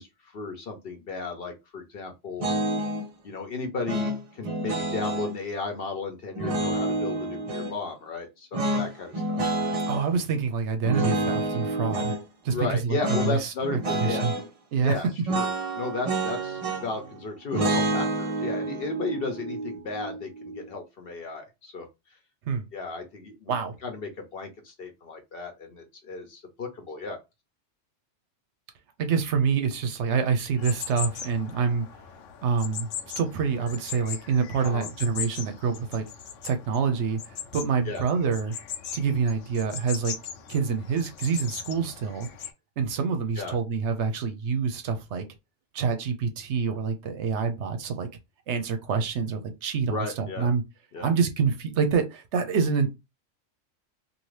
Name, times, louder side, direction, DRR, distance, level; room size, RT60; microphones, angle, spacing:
voice 1, 0.0-2.5 3.2-9.4 12.5-14.5 14.8-21.9 22.7-23.5 23.8-27.2 34.6-34.9 37.9-38.0 43.4-43.6 49.9-50.5 50.9-51.1, left 4 dB, 55° left, 0.9 m, -34 dB
sound 1, 2.4-3.1 3.9-5.3 6.4-7.8 8.5-10.0 10.9-12.2 13.0-13.4 13.6-14.4 15.3-17.0 17.5-20.6, right 2 dB, 45° right, 0.5 m, -28 dB
voice 2, 9.9-12.2 12.4-13.0 13.2-14.3 14.7-15.0 22.5-22.6 23.5-23.8 29.0-31.9 32.4-32.9 33.2-36.1 36.4-37.2 37.5-38.5 38.9-40.1 40.5-42.3 42.8-45.2 45.7-48.1 48.5-50.6 51.0-52.9, right 5 dB, 70° right, 0.9 m, -26 dB
sound 2, 30.6-42.5, left 8 dB, 80° left, 1.0 m, -39 dB
2.8 x 2.5 x 3.1 m
omnidirectional pair, 1.3 m